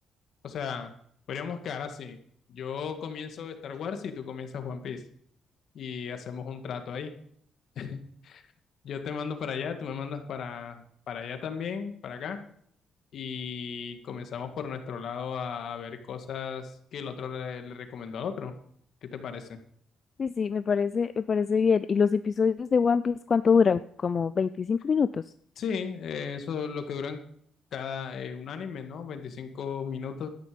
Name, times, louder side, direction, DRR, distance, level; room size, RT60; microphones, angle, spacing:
voice 1, 0.4-0.9 1.3-2.2 2.5-5.0 5.7-7.1 7.8-8.4 8.8-12.4 13.1-18.5 19.0-19.6 25.6-27.2 27.7-30.3, left 6 dB, 65° left, 6 dB, 2.1 m, -35 dB
voice 2, 20.2-25.2, left 6 dB, 45° left, 14 dB, 0.4 m, -24 dB
13.0 x 10.5 x 5.3 m, 0.64 s
cardioid pair, 90°, 0 cm